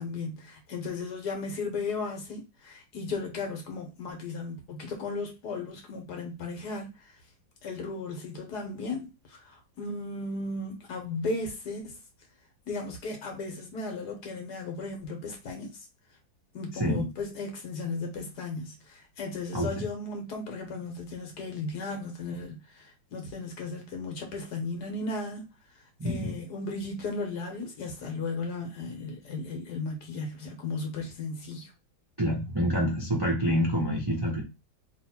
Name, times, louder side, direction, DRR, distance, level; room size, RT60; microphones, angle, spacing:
voice 1, 0.0-7.2 7.6-12.0 12.7-15.8 16.5-25.5 26.0-31.7, left 3 dB, 60° left, 1.4 m, -35 dB
voice 2, 19.5-19.8 26.0-26.4 32.2-34.4, equal, 30° right, 0.4 m, -27 dB
3.1 x 2.9 x 4.3 m
omnidirectional pair, 2.2 m